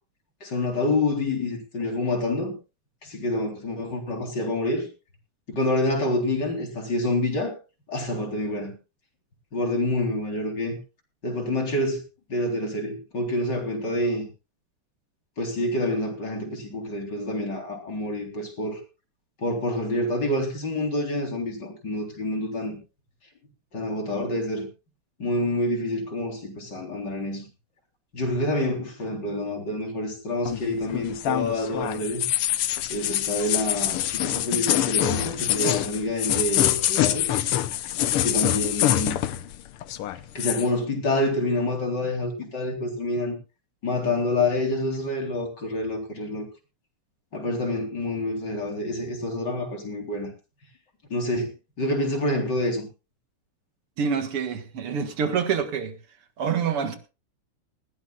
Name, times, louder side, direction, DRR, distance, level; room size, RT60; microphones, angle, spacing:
voice 1, 0.4-2.5 3.0-4.9 5.5-7.5 7.9-8.7 9.5-10.8 11.2-12.0 12.3-14.3 15.4-18.8 19.4-22.8 23.7-24.7 25.2-27.5 28.1-32.2 32.9-37.3 38.1-39.2 40.3-43.3 43.8-46.5 47.3-50.3 51.1-51.5 51.8-52.9, left 1 dB, 50° left, 4.4 m, -27 dB
sound 1, 30.5-39.6 39.8-40.7, left 12 dB, 80° left, 1.8 m, -25 dB
voice 2, 54.0-55.9 56.4-57.0, right 6 dB, 80° right, 2.7 m, -26 dB
19.5 x 16.0 x 2.4 m
omnidirectional pair, 2.4 m